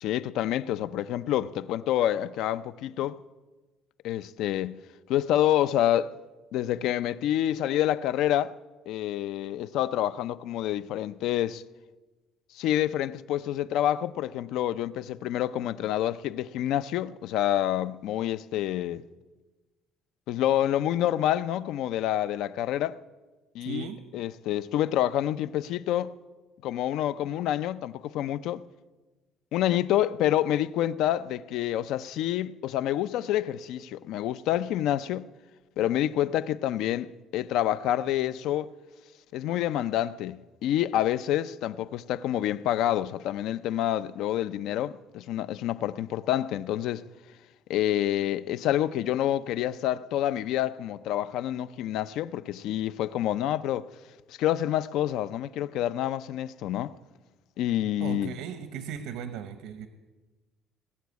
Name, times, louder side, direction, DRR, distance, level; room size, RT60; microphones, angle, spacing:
voice 1, 0.0-3.2 4.0-4.8 5.1-6.1 6.5-8.5 8.9-11.6 12.5-19.0 20.3-23.0 23.5-23.9 24.1-26.1 26.6-28.6 29.5-35.3 35.8-38.7 39.3-47.0 47.7-53.9 54.3-57.0 57.6-58.3, left 12 dB, 65° left, 0.5 m, -28 dB
voice 2, 23.6-24.0 58.0-59.9, right 7 dB, 85° right, 0.9 m, -37 dB
19.5 x 7.2 x 9.4 m
cardioid pair, 170°, 0 cm